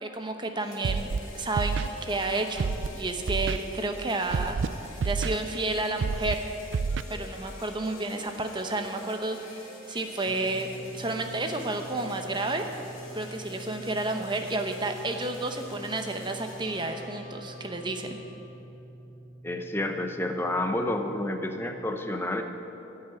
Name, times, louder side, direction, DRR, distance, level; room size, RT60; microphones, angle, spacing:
voice 1, 0.0-4.6 5.0-6.4 7.1-9.6 9.9-10.7 10.9-12.7 13.1-18.2, right 2 dB, 25° right, 5 dB, 0.8 m, -31 dB
sound 1, 0.6-18.6, left 2 dB, 85° left, 2.8 m, -47 dB
Scratching (performance technique), 0.8-1.2 1.6-1.9 2.6-2.9 3.3-3.6 4.3-4.7 5.0-5.3 6.0-6.3 6.7-7.0, right 5 dB, 70° right, 0.4 m, -28 dB
sound 2, 10.2-21.7, right 1 dB, 35° left, 1.4 m, -46 dB
voice 2, 19.4-22.4, left 1 dB, 10° left, 5 dB, 0.7 m, -29 dB
15.5 x 5.7 x 9.2 m, 3.0 s
head